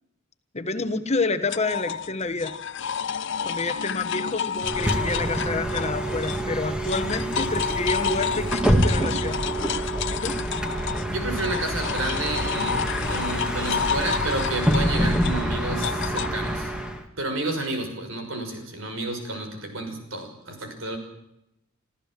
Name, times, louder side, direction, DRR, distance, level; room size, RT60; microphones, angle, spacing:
voice 1, 0.5-2.6 3.4-9.4 10.1-10.4, left 3 dB, 35° left, 10 dB, 1.3 m, -28 dB
sound 1, 1.5-6.5 6.8-16.3, left 7 dB, 65° left, 0.7 m, -30 dB
Bus, 4.6-17.0, right 1 dB, 5° right, 2.3 m, -26 dB
voice 2, 11.1-16.7 17.2-21.0, right 2 dB, 70° right, 5 dB, 6.0 m, -31 dB
26.0 x 14.5 x 7.7 m, 0.81 s
head